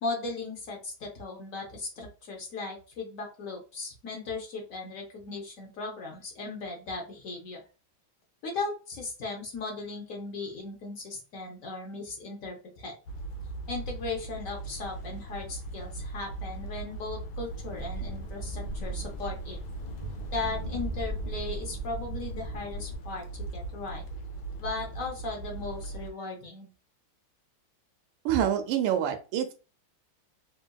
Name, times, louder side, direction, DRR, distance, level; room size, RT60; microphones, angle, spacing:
voice 1, 0.0-7.6 8.4-13.0 13.7-19.6 20.3-24.0 24.6-26.7, left 3 dB, 60° left, 1 dB, 0.9 m, -37 dB
sound 1, 13.1-26.1, right 3 dB, 75° left, 1.4 m, -39 dB
sound 2, 17.4-23.0, right 1 dB, 45° right, 0.4 m, -39 dB
voice 2, 28.2-29.5, right 10 dB, 90° right, 7 dB, 1.5 m, -26 dB
3.6 x 2.7 x 2.2 m, 0.33 s
omnidirectional pair, 2.4 m